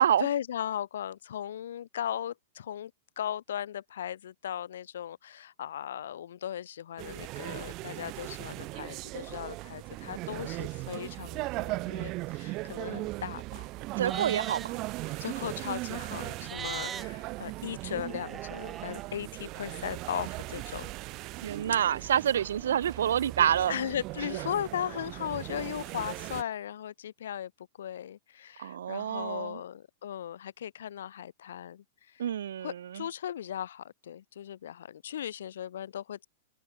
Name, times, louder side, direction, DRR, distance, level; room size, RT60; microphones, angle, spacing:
voice 1, 0.0-2.9 3.2-13.6 14.1-14.2 15.0-20.9 23.7-27.5 27.8-31.8 32.1-32.2 32.6-36.3, left 10 dB, 70° left, 0.8 m, -37 dB
sound 1, 7.0-26.4, right 21 dB, 40° right, 1.4 m, -38 dB
Livestock farm animals working animals, 14.0-14.7 16.4-17.0 18.1-19.0, right 8 dB, 20° right, 1.6 m, -39 dB
voice 2, 14.0-14.8 21.4-23.8 28.6-29.6 32.2-33.0, right 9 dB, 70° right, 0.6 m, -27 dB
open air
hypercardioid pair, 105°, 0 cm